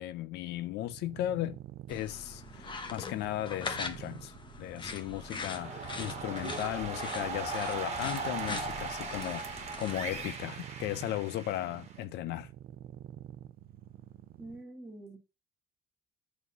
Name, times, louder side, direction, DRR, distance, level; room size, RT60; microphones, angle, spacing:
voice 1, 0.0-1.6 1.9-12.5, left 14 dB, 80° left, 0.5 m, -36 dB
sound 1, 0.8-14.6, right 11 dB, 60° right, 0.5 m, -49 dB
sound 2, 1.9-10.3, left 4 dB, 30° left, 1.1 m, -42 dB
sound 3, 5.1-12.0, right 4 dB, 40° right, 1.6 m, -39 dB
voice 2, 14.4-15.2, right 2 dB, 5° right, 2.0 m, -46 dB
7.2 x 4.3 x 5.5 m
cardioid pair, 110°, 17 cm